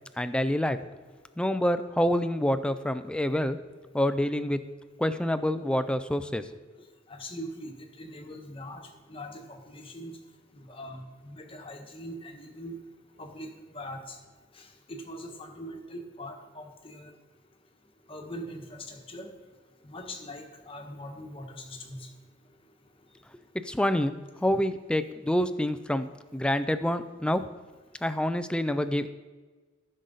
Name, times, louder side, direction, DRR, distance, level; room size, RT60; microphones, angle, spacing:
voice 1, 0.2-0.8 1.4-3.6 3.9-4.6 5.0-6.4 23.7-24.1 24.4-27.4 28.0-29.1, left 1 dB, 5° left, 11 dB, 0.3 m, -27 dB
voice 2, 7.1-10.2 10.5-12.8 13.2-14.2 14.5-17.1 18.1-19.3 19.8-22.1, equal, 25° left, 3 dB, 1.2 m, -42 dB
14.0 x 6.5 x 4.0 m, 1.4 s
head